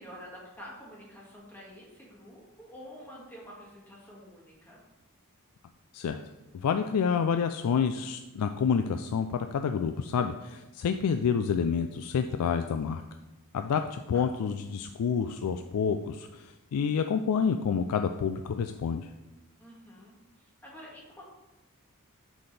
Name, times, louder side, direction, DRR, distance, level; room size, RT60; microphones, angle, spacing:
voice 1, 0.0-4.8 13.6-14.3 19.6-21.2, equal, 10° left, -5 dB, 2.0 m, -49 dB
voice 2, 6.5-13.0 13.5-19.1, left 6 dB, 85° left, 7 dB, 0.4 m, -28 dB
9.4 x 4.2 x 3.3 m, 1.0 s
head